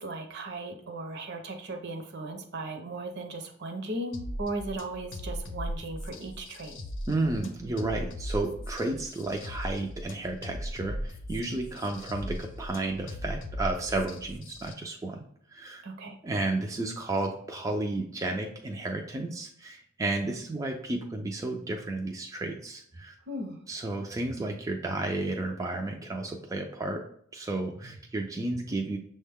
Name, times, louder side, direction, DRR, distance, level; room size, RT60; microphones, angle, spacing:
voice 1, 0.0-6.8 15.8-16.2 23.3-23.6, right 2 dB, 55° right, 5 dB, 0.7 m, -37 dB
sound 1, 4.1-14.7, equal, 65° left, 0.6 m, -38 dB
voice 2, 7.1-15.2 15.5-15.8 16.2-23.1 23.7-27.0 27.3-29.0, right 2 dB, 15° right, 1 dB, 0.3 m, -32 dB
6.2 x 2.2 x 3.5 m, 0.65 s
head